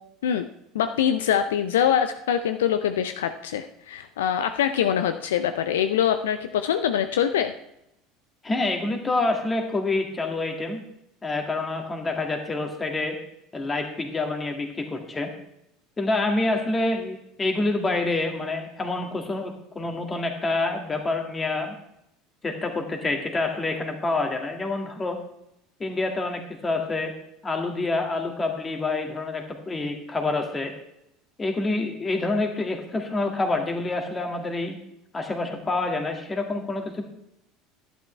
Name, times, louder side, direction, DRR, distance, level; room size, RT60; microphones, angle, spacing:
voice 1, 0.7-7.5, left 9 dB, 70° left, 9 dB, 0.5 m, -24 dB
voice 2, 8.4-10.8 11.2-13.2 13.5-15.3 16.0-21.7 22.4-25.2 25.8-27.1 27.4-30.7 31.4-34.8 35.1-37.0, left 2 dB, 20° left, 3 dB, 2.0 m, -27 dB
11.5 x 10.5 x 3.3 m, 0.80 s
figure-of-eight pair, 70°, 0 cm